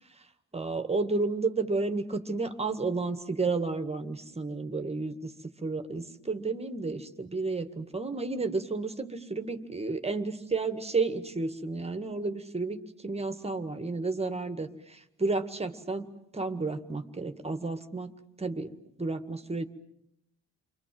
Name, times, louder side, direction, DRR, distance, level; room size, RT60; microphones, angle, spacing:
voice 1, 0.5-5.3 5.6-12.8 13.0-16.1 16.3-18.1 18.4-18.7 19.0-19.6, right 3 dB, 20° right, 8 dB, 1.9 m, -31 dB
30.0 x 23.0 x 7.7 m, 0.74 s
cardioid pair, 90°, 30 cm